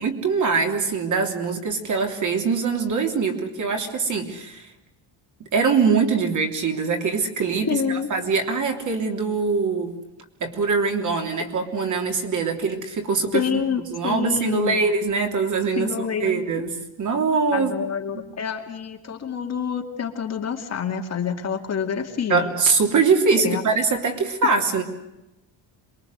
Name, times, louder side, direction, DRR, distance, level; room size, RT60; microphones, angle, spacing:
voice 1, 0.0-4.7 5.5-7.8 8.1-9.9 10.4-13.6 13.9-15.9 16.2-17.8 18.1-18.2 22.3-24.8, right 4 dB, 35° right, 4 dB, 3.3 m, -23 dB
voice 2, 7.6-8.1 13.3-14.8 15.8-16.5 17.5-22.5 23.4-23.6, left 7 dB, 30° left, 3 dB, 2.3 m, -27 dB
28.0 x 22.0 x 8.1 m, 0.93 s
cardioid pair, 170°, 49 cm